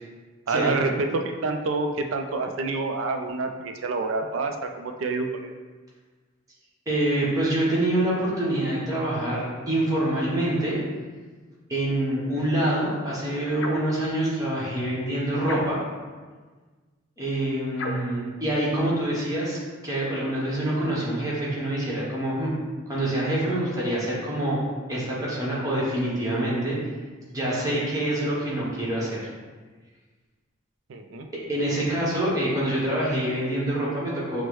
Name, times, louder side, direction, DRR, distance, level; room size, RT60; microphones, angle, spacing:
voice 1, 0.5-5.3 30.9-31.3, right 3 dB, 75° right, 4 dB, 0.4 m, -27 dB
voice 2, 6.9-10.8 11.7-15.8 17.2-19.6 19.8-22.5 22.9-24.6 24.9-26.8 27.3-29.2 31.5-34.4, right 1 dB, 15° right, -6 dB, 1.0 m, -26 dB
sound 1, 13.6-14.0 15.4-16.0 17.7-18.2, left 2 dB, 60° left, 0.5 m, -33 dB
6.1 x 2.1 x 3.1 m, 1.4 s
head